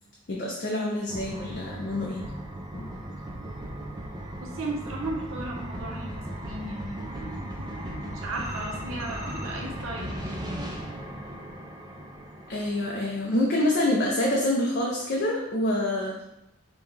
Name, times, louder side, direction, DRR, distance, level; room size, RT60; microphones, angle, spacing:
voice 1, 0.3-2.2 2.7-2.9 12.5-16.2, left 1 dB, 50° left, -2 dB, 0.5 m, -26 dB
sound 1, 1.1-13.8, right 1 dB, 20° right, 0.4 m, -37 dB
voice 2, 4.4-10.2, right 2 dB, 65° right, -2 dB, 0.8 m, -35 dB
5.2 x 2.3 x 3.2 m, 0.87 s
head